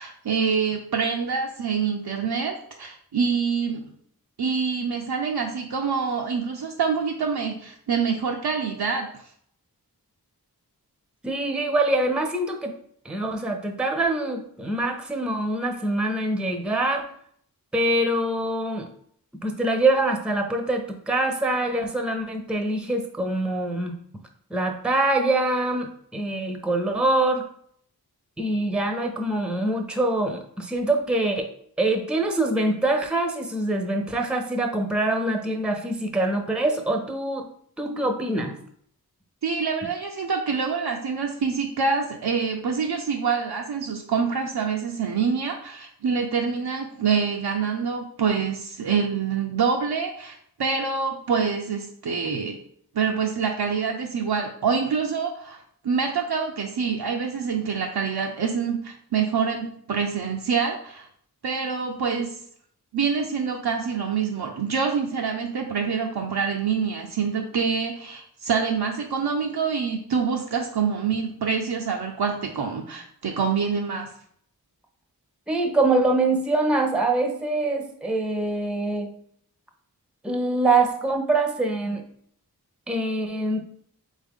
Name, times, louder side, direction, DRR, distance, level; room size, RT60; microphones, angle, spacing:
voice 1, 0.0-3.9 4.4-9.1 39.4-52.6 52.9-55.6 55.8-61.1 61.4-62.4 62.9-74.1, right 6 dB, 80° right, 1 dB, 0.6 m, -26 dB
voice 2, 11.2-12.7 13.0-17.0 17.7-18.9 19.4-24.0 24.5-27.4 28.4-31.5 31.8-37.5 37.8-38.6 75.5-79.1 80.2-82.0 82.9-83.6, right 2 dB, 5° right, 4 dB, 0.6 m, -24 dB
4.0 x 3.6 x 3.6 m, 0.64 s
wide cardioid pair, 50°, 38 cm